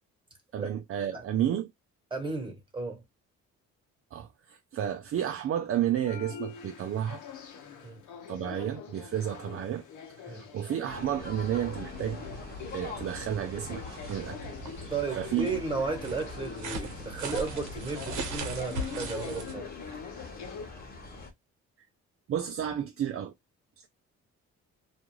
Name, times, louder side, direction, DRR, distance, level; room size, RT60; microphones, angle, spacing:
voice 1, 0.5-1.7 4.1-7.2 8.3-9.8 10.2-12.2 12.7-14.4 15.1-15.5 22.3-23.3, right 10 dB, 50° right, 0.5 m, -31 dB
voice 2, 2.1-3.0 7.8-8.0 10.3-10.4 14.9-19.7, right 4 dB, 15° right, 1.3 m, -34 dB
sound 1, 6.0-20.7, left 7 dB, 80° left, 0.8 m, -44 dB
sound 2, 10.8-21.3, left 3 dB, 30° left, 1.1 m, -45 dB
sound 3, 11.2-19.5, right 2 dB, 90° right, 0.9 m, -40 dB
2.5 x 2.2 x 3.0 m
cardioid pair, 90°, 30 cm